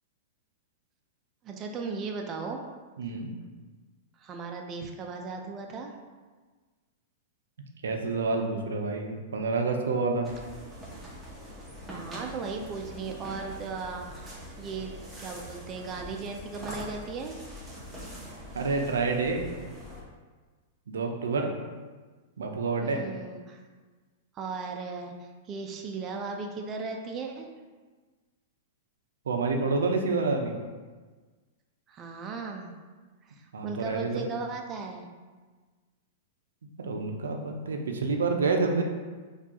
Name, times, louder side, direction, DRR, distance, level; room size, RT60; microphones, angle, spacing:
voice 1, 1.4-2.6 4.2-5.9 11.9-17.4 22.8-23.6 24.3-27.5 31.9-32.7 33.2-35.1, right 4 dB, 30° right, 2 dB, 0.4 m, -37 dB
voice 2, 3.0-3.3 7.8-10.3 18.5-19.4 20.9-21.5 22.4-23.0 29.3-30.5 33.5-34.2 36.8-38.8, right 3 dB, 90° right, 3 dB, 0.5 m, -28 dB
sound 1, 10.2-20.0, equal, 5° right, 0.8 m, -43 dB
4.4 x 2.3 x 2.8 m, 1.4 s
hypercardioid pair, 130°, 0 cm